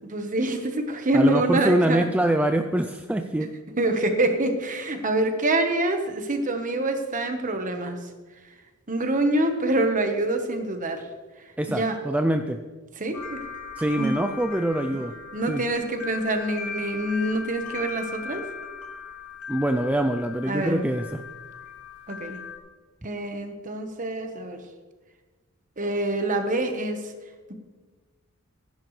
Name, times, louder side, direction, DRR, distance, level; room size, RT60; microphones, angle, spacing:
voice 1, 0.1-2.1 3.8-8.1 8.9-11.0 11.7-12.0 13.0-13.4 13.9-14.1 15.3-18.5 20.5-20.8 22.1-22.4 23.0-24.6 25.8-27.0, right 1 dB, 35° right, 6 dB, 1.2 m, -25 dB
voice 2, 1.1-3.5 11.6-12.6 13.8-15.1 15.5-15.6 19.5-21.2, right 1 dB, 5° right, 6 dB, 0.4 m, -24 dB
sound 1, 13.1-22.6, left 5 dB, 80° left, 2.3 m, -38 dB
16.0 x 10.5 x 3.2 m, 1.3 s
head